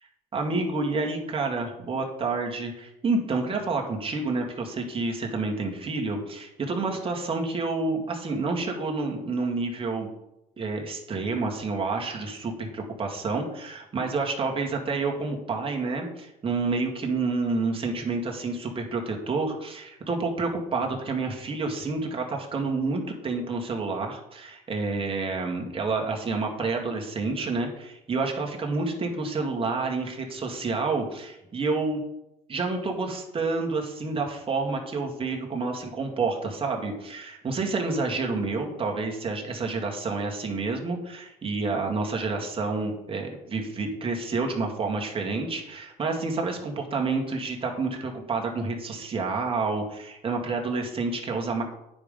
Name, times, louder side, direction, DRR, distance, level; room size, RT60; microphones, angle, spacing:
voice 1, 0.3-10.1 10.6-32.0 32.5-51.6, right 3 dB, 35° right, 1 dB, 2.0 m, -29 dB
9.5 x 5.2 x 5.4 m, 0.89 s
cardioid pair, 110°, 17 cm